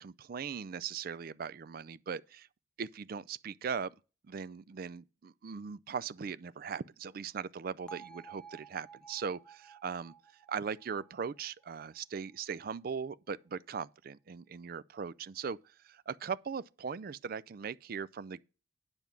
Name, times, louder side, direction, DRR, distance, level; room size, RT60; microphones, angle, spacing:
voice 1, 0.0-2.5 2.8-3.9 4.3-10.1 10.5-15.6 15.8-18.4, right 6 dB, 50° right, 0.4 m, -39 dB
Bell, 7.9-11.9, right 6 dB, 5° left, 0.5 m, -53 dB
9.4 x 5.2 x 5.9 m
head